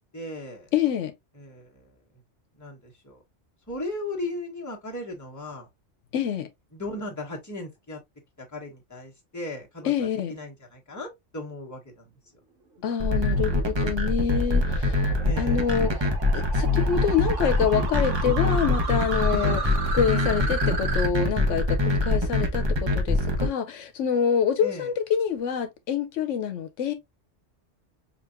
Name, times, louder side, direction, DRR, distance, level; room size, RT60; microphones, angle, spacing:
voice 1, 0.1-0.7 1.3-2.2 2.5-3.2 3.7-5.7 6.7-8.0 8.4-12.1 15.2-15.6 19.3-19.7 24.6-24.9, left 1 dB, 15° left, 1.2 m, -37 dB
voice 2, 0.7-1.1 6.1-6.5 9.8-10.3 12.8-15.9 16.3-19.6 19.9-26.9, left 8 dB, 80° left, 1.0 m, -26 dB
sound 1, 13.0-23.5, left 2 dB, 25° right, 0.7 m, -24 dB
sound 2, 13.2-21.1, right 4 dB, 85° right, 1.4 m, -35 dB
5.1 x 2.8 x 2.4 m
omnidirectional pair, 1.3 m